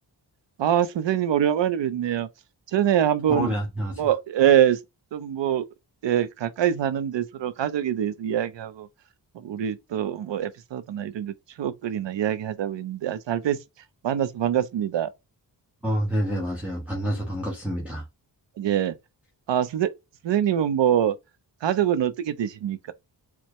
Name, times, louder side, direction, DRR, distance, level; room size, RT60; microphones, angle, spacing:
voice 1, 0.6-2.3 2.7-3.5 4.0-4.8 5.1-5.7 6.0-8.9 9.3-13.6 14.0-15.1 18.6-19.0 19.5-19.9 20.2-21.2 21.6-22.9, right 10 dB, 75° right, 0.6 m, -24 dB
voice 2, 3.3-4.0 15.8-18.1, equal, 5° right, 1.2 m, -28 dB
4.5 x 2.1 x 3.0 m
wide cardioid pair, 90°, 44 cm